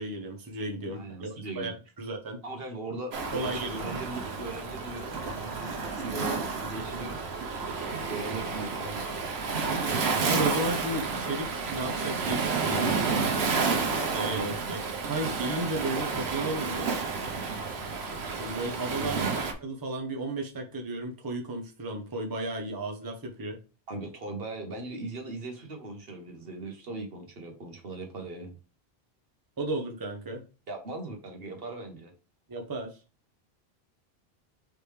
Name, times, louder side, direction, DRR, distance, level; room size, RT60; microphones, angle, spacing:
voice 1, 0.0-1.7 2.0-2.4 3.3-3.8 10.2-13.0 14.1-16.9 18.4-23.6 29.6-30.4 32.5-32.9, right 2 dB, 20° right, 0.8 m, -34 dB
voice 2, 0.9-1.7 2.4-7.2 8.1-9.2 14.3-14.6 19.0-19.4 23.9-28.6 30.7-32.1, right 2 dB, 65° right, 1.2 m, -39 dB
Waves surf, 3.1-19.5, right 4 dB, 80° right, 1.1 m, -31 dB
5.0 x 3.3 x 3.2 m
omnidirectional pair, 1.1 m